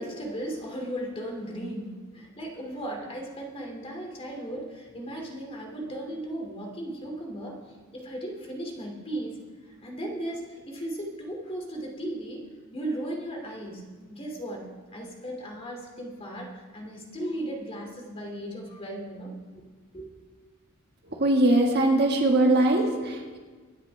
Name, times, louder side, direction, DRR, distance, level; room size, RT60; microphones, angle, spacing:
voice 1, 0.0-9.4 9.7-13.8 14.1-19.6 19.9-20.1, right 1 dB, 25° left, 0 dB, 2.5 m, -36 dB
voice 2, 21.1-23.4, right 1 dB, 50° right, 1 dB, 1.7 m, -21 dB
23.0 x 9.9 x 3.4 m, 1.4 s
head